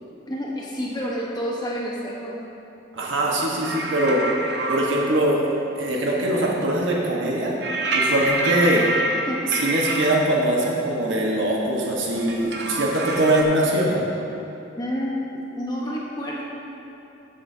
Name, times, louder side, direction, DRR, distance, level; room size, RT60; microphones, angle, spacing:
voice 1, 0.3-2.4 9.2-9.4 14.8-15.1 15.6-16.4, equal, 20° left, -4 dB, 1.1 m, -29 dB
voice 2, 2.9-4.2 4.7-7.5 7.9-8.8 9.6-14.0, right 1 dB, 75° right, -3 dB, 1.3 m, -22 dB
sound 1, 3.6-4.8 7.6-10.1 12.1-13.4, right 2 dB, 60° right, 0.8 m, -26 dB
14.5 x 7.8 x 2.8 m, 2.8 s
head